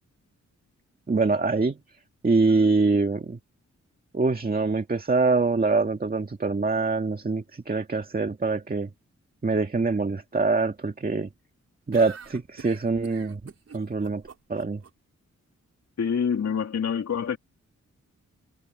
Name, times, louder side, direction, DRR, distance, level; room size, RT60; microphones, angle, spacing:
voice 1, 1.1-1.8 2.2-3.4 4.1-8.9 9.4-11.3 11.9-13.4 13.7-14.2 14.5-14.8, right 3 dB, 30° right, 2.0 m, -24 dB
sound 1, 11.9-14.9, right 5 dB, 55° right, 5.2 m, -45 dB
voice 2, 16.0-17.4, left 7 dB, 65° left, 3.0 m, -26 dB
cardioid pair, 85°, 29 cm